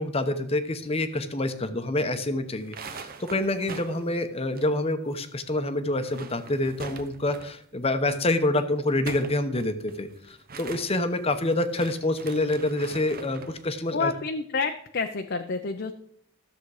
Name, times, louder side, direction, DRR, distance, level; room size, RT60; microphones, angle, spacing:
voice 1, 0.0-14.1, left 2 dB, 25° left, 9 dB, 0.9 m, -27 dB
sound 1, 2.5-5.2 5.4-5.5 5.9-7.7 8.8-13.6, right 4 dB, 40° right, 0.8 m, -43 dB
voice 2, 13.9-15.9, left 4 dB, 50° left, 5 dB, 0.6 m, -29 dB
13.0 x 7.3 x 4.8 m, 0.69 s
head